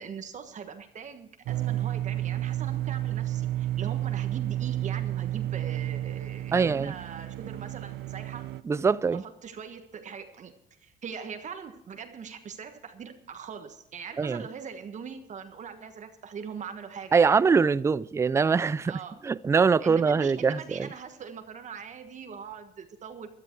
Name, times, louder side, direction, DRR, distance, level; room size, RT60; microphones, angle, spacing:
voice 1, 0.0-8.5 9.1-10.5 10.8-17.4 18.8-19.2 19.8-23.3, right 6 dB, 45° right, 1.4 m, -41 dB
sound 1, 1.5-8.6, right 13 dB, 85° right, 0.5 m, -31 dB
voice 2, 6.5-6.9 8.7-9.2 14.2-14.4 17.1-18.9 19.2-20.9, right 5 dB, 15° right, 0.4 m, -23 dB
14.5 x 12.5 x 4.6 m
cardioid pair, 110°, 17 cm